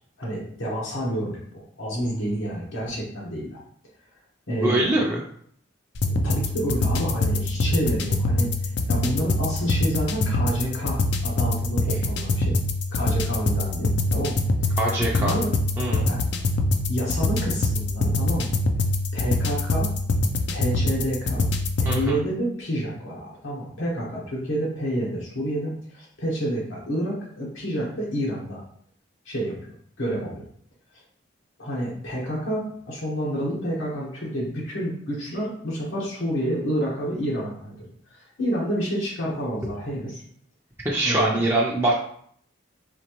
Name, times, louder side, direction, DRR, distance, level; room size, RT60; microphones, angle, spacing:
voice 1, 0.2-3.6 4.5-4.9 6.1-8.5 8.9-12.6 12.9-14.4 15.2-15.5 16.1-16.2 16.9-18.5 19.1-19.9 20.5-21.5 21.8-28.6 29.2-29.5 30.0-30.5 31.6-40.2 41.0-41.4, equal, 80° left, -5 dB, 1.2 m, -29 dB
voice 2, 4.6-5.2 14.8-15.4 15.8-16.1 21.8-22.2 40.8-41.9, right 1 dB, 10° right, -5 dB, 0.5 m, -23 dB
sound 1, 5.9-22.0, left 2 dB, 55° left, 0.4 m, -24 dB
4.2 x 3.2 x 3.0 m, 0.63 s
head